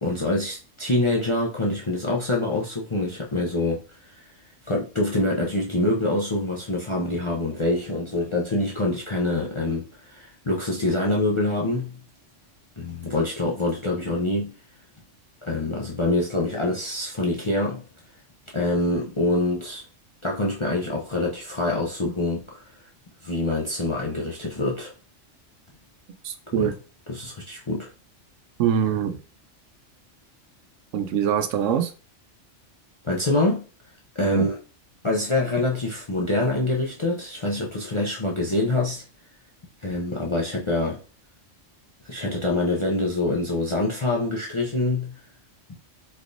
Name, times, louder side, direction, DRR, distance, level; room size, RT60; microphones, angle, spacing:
voice 1, 0.0-4.3 4.7-12.0 12.8-14.5 15.4-17.8 18.5-19.8 20.2-22.7 23.2-24.9 26.5-26.7 27.1-27.9 33.0-33.6 34.1-34.6 35.0-39.0 39.8-41.0 42.0-45.1, left 2 dB, 40° left, 0.4 m, -25 dB
voice 2, 26.2-26.7 28.6-29.2 30.9-31.9 34.2-34.5, right 8 dB, 85° right, 0.9 m, -24 dB
4.0 x 3.3 x 2.5 m
omnidirectional pair, 1.3 m